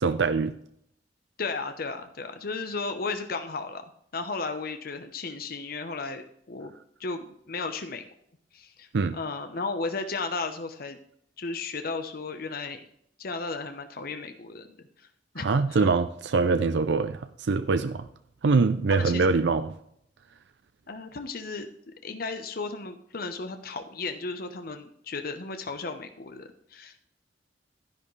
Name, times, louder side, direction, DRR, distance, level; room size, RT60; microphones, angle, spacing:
voice 1, 0.0-0.5 8.9-9.2 15.4-18.1 18.4-19.7, right 4 dB, 85° right, 11 dB, 0.5 m, -24 dB
voice 2, 1.4-3.8 4.1-6.7 7.0-8.1 8.5-11.0 11.4-12.8 13.2-14.7 15.0-15.1 15.3-15.9 18.9-19.3 20.9-27.0, left 4 dB, 60° left, 7 dB, 0.9 m, -34 dB
11.0 x 10.5 x 3.2 m, 0.70 s
head